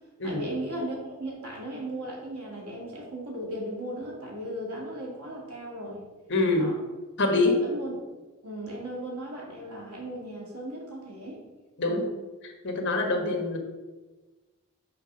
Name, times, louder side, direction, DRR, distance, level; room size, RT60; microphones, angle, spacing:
voice 1, 0.2-6.0 6.6-6.8 7.4-8.0 8.4-11.4 11.9-12.1 13.1-13.3, right 1 dB, 85° right, -3 dB, 2.1 m, -37 dB
voice 2, 6.3-6.7 7.2-7.6 11.8-12.0 12.4-13.6, left 2 dB, 55° left, 3 dB, 1.2 m, -25 dB
5.8 x 4.1 x 5.5 m, 1.2 s
head